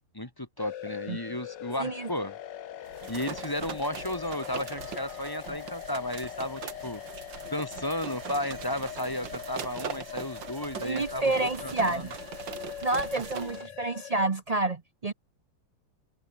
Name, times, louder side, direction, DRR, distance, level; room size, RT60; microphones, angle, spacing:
voice 1, 0.1-2.3 3.1-7.0 7.5-12.0 13.4-13.6, left 1 dB, 10° left, 1.6 m, -34 dB
sound 1, 0.6-14.3, left 11 dB, 65° left, 1.5 m, -42 dB
sound 2, 2.9-13.7, right 8 dB, 65° right, 2.3 m, -41 dB
voice 2, 10.8-12.1 12.8-15.1, right 2 dB, 80° right, 0.3 m, -29 dB
omnidirectional pair, 2.3 m